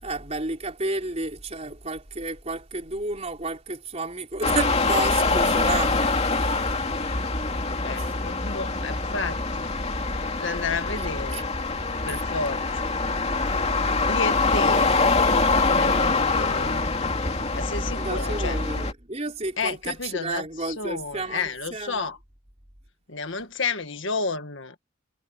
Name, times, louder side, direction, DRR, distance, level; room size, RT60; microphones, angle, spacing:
voice 1, 0.0-6.0 7.9-8.1 11.0-11.1 11.3-11.4 12.1-12.2 17.9-22.1, right 2 dB, 30° right, 4.2 m, -31 dB
sound 1, 4.4-18.9, left 3 dB, 30° left, 2.7 m, -24 dB
voice 2, 7.8-9.7 10.4-11.5 12.0-12.6 14.1-15.0 15.7-16.9 17.5-18.6 19.6-22.2 23.1-24.7, left 4 dB, 60° left, 1.8 m, -31 dB
head